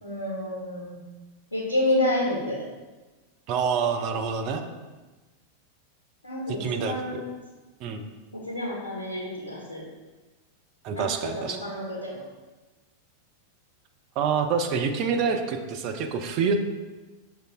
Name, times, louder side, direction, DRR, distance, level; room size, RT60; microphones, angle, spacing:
voice 1, 0.0-1.0 1.5-2.6 6.2-7.1 8.3-9.8 10.9-11.0 11.4-12.2, left 1 dB, 75° left, -6 dB, 0.9 m, -29 dB
voice 2, 3.5-4.6 6.5-7.2 7.8-8.0 10.8-11.6 14.2-16.6, right 6 dB, 40° right, 6 dB, 0.4 m, -27 dB
6.3 x 2.5 x 2.4 m, 1.2 s
figure-of-eight pair, 90°, 0 cm